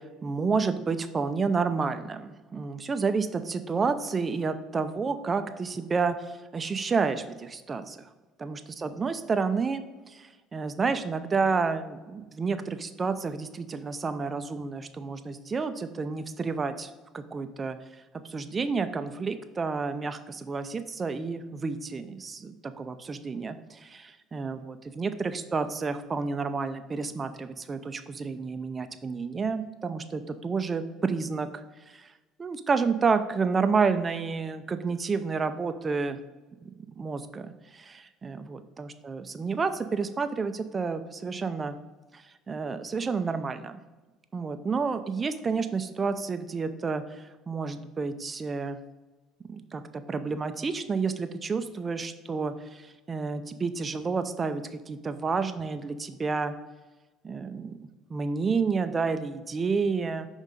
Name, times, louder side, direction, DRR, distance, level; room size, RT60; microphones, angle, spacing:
voice 1, 0.2-8.0 8.4-17.8 18.3-31.6 31.9-32.1 32.4-36.2 36.6-41.7 42.5-43.8 44.3-48.8 49.5-56.5 57.2-60.3, right 4 dB, 30° right, 10 dB, 0.5 m, -30 dB
5.5 x 3.6 x 5.1 m, 1.2 s
hypercardioid pair, 70°, 0 cm